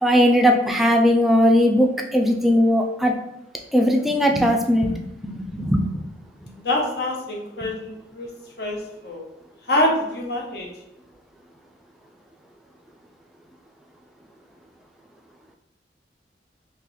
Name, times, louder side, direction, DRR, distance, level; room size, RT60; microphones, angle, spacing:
voice 1, 0.0-3.1 3.7-5.9, equal, ahead, 1 dB, 0.3 m, -19 dB
voice 2, 6.6-8.3 8.6-8.8 9.0-9.2 9.7-10.7, left 1 dB, 60° left, 0 dB, 0.8 m, -25 dB
2.9 x 2.9 x 3.9 m, 0.82 s
head